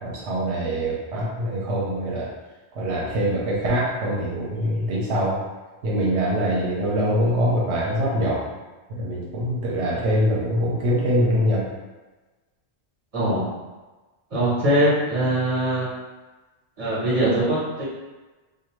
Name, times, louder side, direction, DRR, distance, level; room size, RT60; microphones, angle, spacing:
voice 1, 0.0-2.3 2.8-5.4 5.8-8.5 8.9-11.7, equal, 80° right, -5 dB, 0.9 m, -24 dB
voice 2, 13.1-13.5 14.3-15.9 16.8-17.8, right 1 dB, 35° right, -8 dB, 1.1 m, -22 dB
2.7 x 2.1 x 2.9 m, 1.2 s
omnidirectional pair, 1.1 m